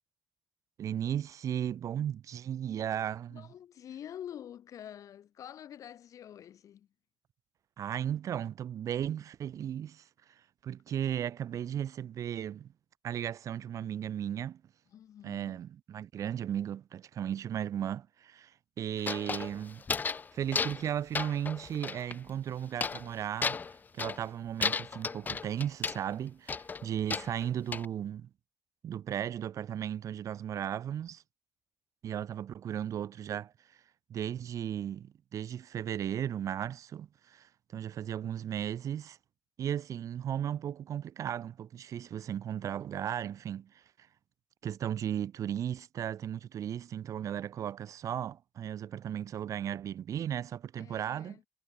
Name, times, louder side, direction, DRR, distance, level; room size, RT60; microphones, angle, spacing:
voice 1, 0.8-3.5 7.8-12.7 13.0-14.6 15.2-19.8 20.3-23.6 23.9-28.3 28.8-31.2 32.0-33.8 34.1-39.2 39.6-44.1 44.6-51.4, right 10 dB, 65° right, 1.7 m, -36 dB
voice 2, 3.3-6.9 14.9-15.6 50.8-51.4, left 10 dB, 70° left, 4.8 m, -47 dB
sound 1, 19.0-20.3 20.5-20.9 21.1-22.2 22.8-23.1 23.4-24.2 24.6-26.0 26.5-27.9, left 5 dB, 30° left, 0.6 m, -34 dB
cardioid pair, 120°, 6 cm